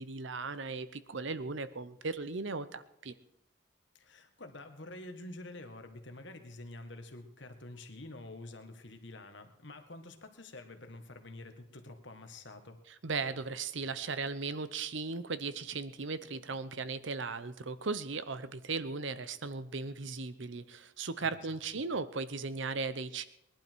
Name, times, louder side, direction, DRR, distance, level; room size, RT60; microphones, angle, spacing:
voice 1, 0.0-3.1 13.0-23.3, right 4 dB, 65° right, 14 dB, 0.8 m, -37 dB
voice 2, 4.0-12.8 21.2-21.9, left 2 dB, 65° left, 7 dB, 1.6 m, -48 dB
20.5 x 11.5 x 4.6 m, 0.82 s
head